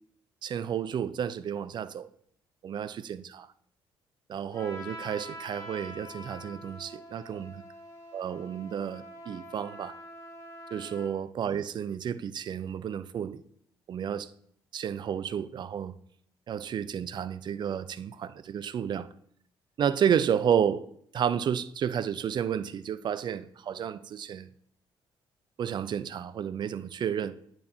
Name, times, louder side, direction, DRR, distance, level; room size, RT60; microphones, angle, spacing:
voice 1, 0.4-2.1 2.6-3.5 4.3-7.5 8.1-10.0 10.7-13.4 13.9-14.3 14.7-16.0 16.5-19.1 19.8-20.8 21.1-24.5 25.6-27.4, right 8 dB, 35° right, 0.3 m, -31 dB
Trumpet, 4.5-11.1, equal, 25° left, 2.0 m, -45 dB
8.4 x 5.9 x 2.7 m
figure-of-eight pair, 45°, 13 cm